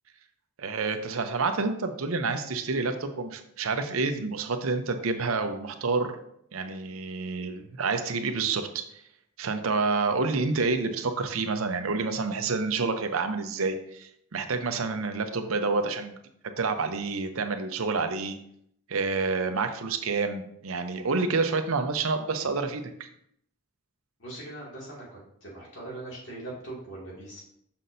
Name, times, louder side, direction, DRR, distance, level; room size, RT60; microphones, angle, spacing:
voice 1, 0.6-6.2 6.5-8.7 9.4-16.2 16.6-18.4 18.9-23.1, right 4 dB, 85° right, 8 dB, 0.7 m, -28 dB
voice 2, 24.2-27.4, right 2 dB, 60° left, -4 dB, 2.4 m, -41 dB
6.4 x 5.8 x 2.7 m, 0.71 s
head